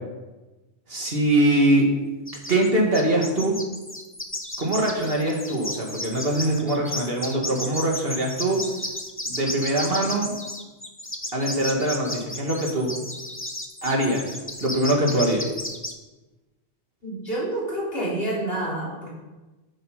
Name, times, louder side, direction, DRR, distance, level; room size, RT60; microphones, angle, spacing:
voice 1, 0.9-1.9 2.5-3.6 4.6-8.6 9.3-10.3 11.3-12.9 13.8-15.5, right 1 dB, 60° right, -1 dB, 2.3 m, -23 dB
sound 1, 2.3-2.7 2.9-15.9, left 1 dB, 10° left, 0.9 m, -33 dB
voice 2, 17.0-19.1, right 1 dB, 60° left, -5 dB, 4.0 m, -28 dB
12.0 x 8.2 x 5.0 m, 1.1 s
omnidirectional pair, 1.1 m